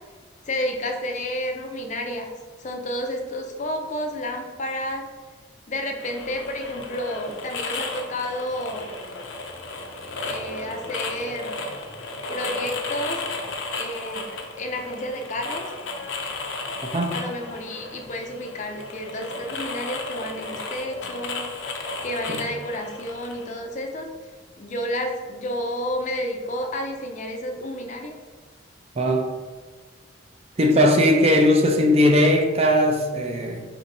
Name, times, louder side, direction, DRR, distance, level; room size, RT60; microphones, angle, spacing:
voice 1, 0.5-2.3 2.6-5.0 5.7-8.9 10.2-11.6 12.3-13.2 13.7-14.3 14.6-15.6 17.1-21.5 22.0-24.1 24.6-28.1, left 1 dB, 40° left, 4 dB, 0.4 m, -30 dB
sound 1, 6.0-23.5, left 3 dB, 85° left, 0.6 m, -34 dB
voice 2, 16.8-17.2 22.3-22.4 29.0-29.3 30.6-33.6, left 1 dB, 30° right, 3 dB, 0.4 m, -19 dB
4.3 x 2.6 x 4.0 m, 1.4 s
head